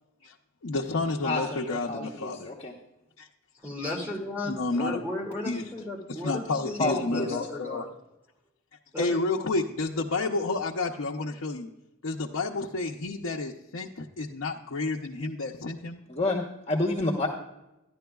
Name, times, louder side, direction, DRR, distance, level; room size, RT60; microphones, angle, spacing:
voice 1, 0.6-2.5 3.2-3.3 4.4-5.0 5.4-5.7 6.1-7.9 9.0-11.7 12.0-16.0, left 3 dB, 85° left, -1 dB, 0.7 m, -30 dB
voice 2, 1.2-2.7 6.8-7.4 16.1-17.3, left 2 dB, 30° left, -1 dB, 1.0 m, -29 dB
voice 3, 3.6-7.9 8.9-9.2, left 1 dB, 10° right, -3 dB, 2.2 m, -35 dB
13.5 x 11.0 x 2.3 m, 0.95 s
head